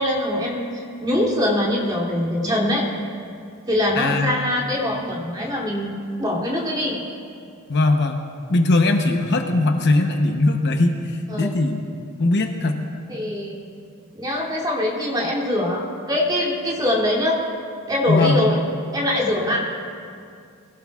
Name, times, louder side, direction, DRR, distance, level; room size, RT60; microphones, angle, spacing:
voice 1, 0.0-2.9 3.7-7.0 11.3-11.6 13.1-13.6 14.1-17.4 17.9-18.6 18.9-19.6, left 1 dB, 20° right, -4 dB, 2.8 m, -23 dB
voice 2, 4.0-4.5 7.7-8.2 8.5-11.8 12.2-12.8 18.1-18.4, left 2 dB, 50° left, 4 dB, 0.9 m, -20 dB
22.5 x 17.0 x 2.4 m, 2.3 s
head